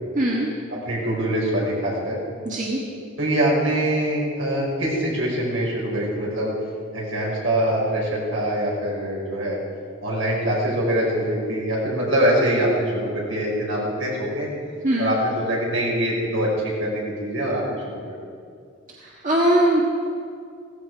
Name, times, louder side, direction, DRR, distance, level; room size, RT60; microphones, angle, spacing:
voice 1, 0.1-0.5 2.4-2.8 14.8-15.1 19.2-19.8, right 1 dB, 40° right, -3 dB, 1.6 m, -20 dB
voice 2, 0.7-2.2 3.2-6.5 6.9-9.6 10.0-14.5 15.0-18.2, right 1 dB, 75° right, -3 dB, 5.1 m, -24 dB
17.0 x 15.0 x 4.7 m, 2.3 s
head